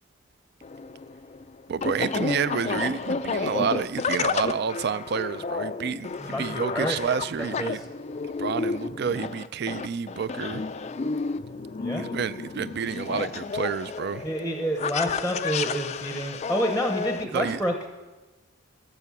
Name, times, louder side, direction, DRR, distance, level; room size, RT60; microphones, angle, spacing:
sound 1, 0.6-17.2, left 4 dB, 30° left, 0.3 m, -31 dB
voice 1, 1.7-7.8 8.4-10.6 11.9-14.3 17.2-17.6, right 6 dB, 50° right, 0.4 m, -29 dB
voice 2, 6.2-7.7 11.8-12.1 14.2-17.7, equal, 5° right, 0.8 m, -29 dB
12.0 x 6.7 x 7.0 m
head